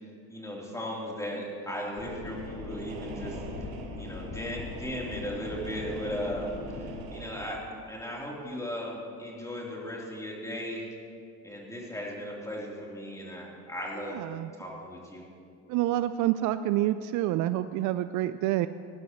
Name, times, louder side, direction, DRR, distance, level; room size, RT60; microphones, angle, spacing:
voice 1, 0.3-3.4 3.9-10.9 11.4-14.2 14.6-15.2, equal, 10° left, -4 dB, 3.6 m, -37 dB
sound 1, 2.0-7.1, left 5 dB, 35° left, 1.2 m, -41 dB
sound 2, 2.0-7.4, right 3 dB, 75° right, 1.8 m, -43 dB
voice 2, 14.0-14.5 15.7-18.7, right 14 dB, 60° right, 13 dB, 0.5 m, -28 dB
19.0 x 11.5 x 3.2 m, 2.4 s
supercardioid pair, 90°, 35 cm